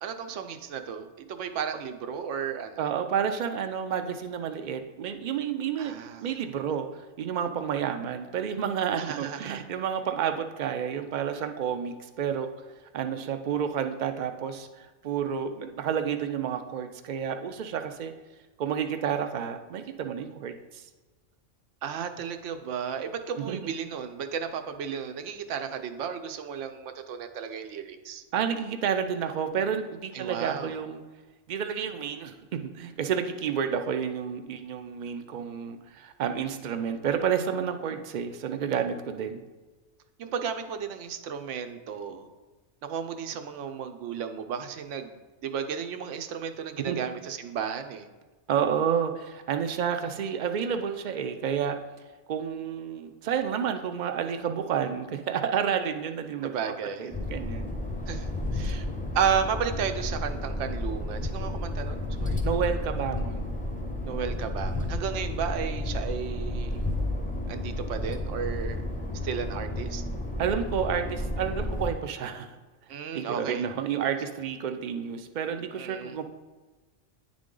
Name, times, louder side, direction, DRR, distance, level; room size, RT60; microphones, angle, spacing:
voice 1, 0.0-2.9 5.8-6.3 9.0-9.6 21.8-28.2 30.1-30.8 40.2-42.3 42.8-48.1 56.4-57.1 58.1-58.9 59.1-62.4 64.0-66.8 67.5-68.8 69.2-70.0 72.9-73.6 75.7-76.2, right 7 dB, 80° right, 8 dB, 0.9 m, -33 dB
voice 2, 2.8-12.5 12.9-18.1 18.6-20.8 23.5-23.6 28.3-31.0 31.5-39.4 46.9-47.0 48.5-51.8 52.3-56.5 57.0-57.8 62.4-63.5 70.4-72.6 73.1-76.2, right 8 dB, 60° right, 8 dB, 0.5 m, -30 dB
sound 1, 57.1-71.9, left 1 dB, 10° left, 0.4 m, -32 dB
9.4 x 3.7 x 3.7 m, 1.2 s
omnidirectional pair, 1.2 m